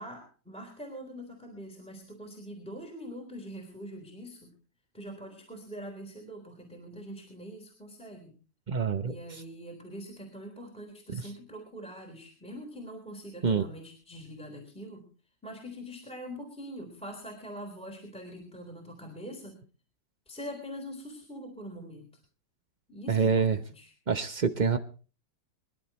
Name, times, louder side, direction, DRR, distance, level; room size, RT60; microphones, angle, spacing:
voice 1, 0.0-4.5 4.9-8.4 9.1-15.1 15.4-19.6 20.3-22.2 22.9-23.9, equal, 5° left, 3 dB, 3.7 m, -43 dB
voice 2, 8.7-9.4 13.4-13.6 23.1-23.6 24.1-24.8, right 5 dB, 65° right, 9 dB, 0.4 m, -26 dB
25.0 x 11.5 x 3.1 m, 0.37 s
omnidirectional pair, 2.2 m